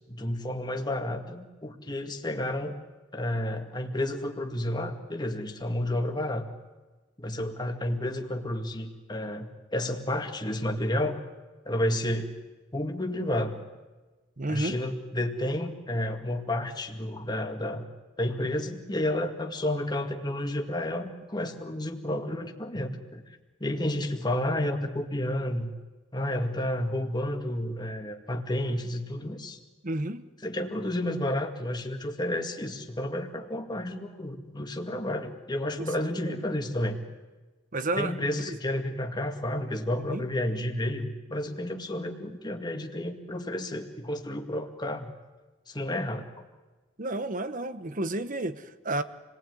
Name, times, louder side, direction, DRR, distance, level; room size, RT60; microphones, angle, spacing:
voice 1, 0.1-2.8 3.1-6.5 7.2-11.2 11.7-12.3 12.7-13.6 14.5-17.9 18.2-25.7 26.1-29.6 30.4-37.0 38.0-45.1 45.7-46.3, left 1 dB, 20° left, 4 dB, 2.2 m, -31 dB
voice 2, 14.4-14.8 29.8-30.3 35.7-35.9 36.3-36.4 37.7-38.1 38.5-38.6 40.1-40.2 47.0-49.0, right 2 dB, 45° right, 12 dB, 1.2 m, -31 dB
28.5 x 19.5 x 9.5 m, 1.3 s
head